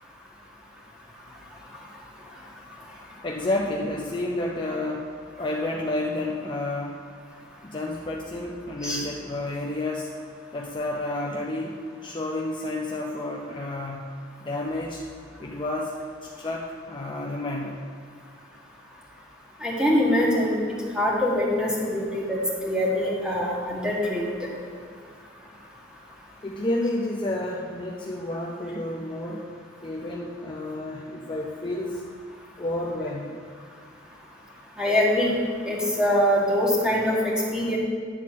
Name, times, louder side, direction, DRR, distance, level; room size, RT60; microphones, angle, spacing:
voice 1, 3.2-5.1 5.4-7.0 7.6-10.1 10.5-14.2 14.4-15.0 15.4-16.0 16.2-17.8 26.4-29.5 29.8-32.0 32.6-33.4, left 1 dB, 25° left, -2 dB, 0.6 m, -30 dB
voice 2, 19.6-20.5 20.9-24.3 34.8-35.3 35.7-37.8, left 1 dB, 5° right, -4 dB, 1.7 m, -23 dB
10.0 x 4.2 x 7.4 m, 2.1 s
head